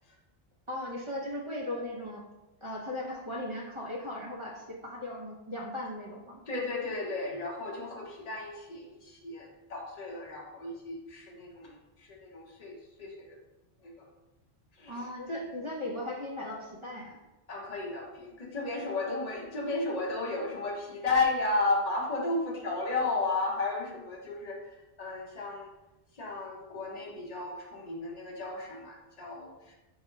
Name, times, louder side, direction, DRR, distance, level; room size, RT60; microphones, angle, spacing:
voice 1, 0.7-2.2 2.6-6.4 14.9-17.1, left 1 dB, 35° right, -3 dB, 0.5 m, -37 dB
voice 2, 6.5-11.7 12.0-13.4 13.8-14.1 14.8-15.0 15.4-15.5 17.5-25.7 26.1-29.7, left 3 dB, 40° left, -1 dB, 0.8 m, -34 dB
3.8 x 2.0 x 4.4 m, 1.0 s
omnidirectional pair, 1.1 m